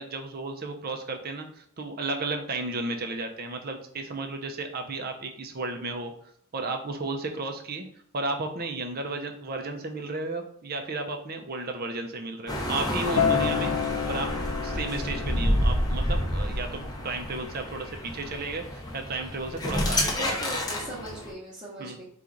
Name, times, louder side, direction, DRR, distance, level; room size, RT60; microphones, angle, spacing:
voice 1, 0.0-6.1 6.5-7.9 8.1-14.3 14.6-20.4 21.8-22.0, right 3 dB, 45° right, 5 dB, 0.6 m, -33 dB
sound 1, 12.5-21.3, equal, 20° left, 0.7 m, -29 dB
Acoustic guitar, 13.2-18.4, left 8 dB, 70° left, 0.6 m, -31 dB
voice 2, 20.1-22.0, equal, 25° right, -8 dB, 1.0 m, -39 dB
4.4 x 2.4 x 3.8 m, 0.65 s
head